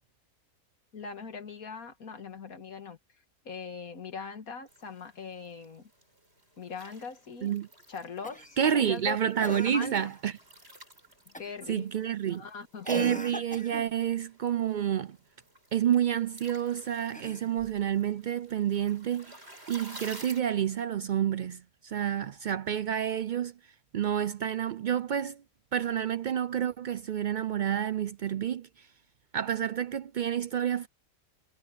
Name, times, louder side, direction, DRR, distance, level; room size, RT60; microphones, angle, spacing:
voice 1, 0.9-3.0 3.4-5.9 6.6-7.5 7.9-9.2 9.7-10.1 11.4-11.9 12.3-12.9, left 5 dB, 80° left, 2.3 m, -41 dB
sound 1, 4.7-20.4, right 1 dB, 45° right, 8.5 m, -53 dB
Cough, 8.2-8.6 9.4-10.2 11.3-11.7 12.8-13.9 17.0-17.8 19.3-19.4, left 1 dB, 5° left, 1.1 m, -39 dB
voice 2, 8.6-10.4 11.7-12.4 12.9-15.2 15.7-19.4 19.7-23.5 23.9-25.4 25.7-28.9 29.3-30.9, right 9 dB, 85° right, 0.4 m, -29 dB
omnidirectional pair, 1.5 m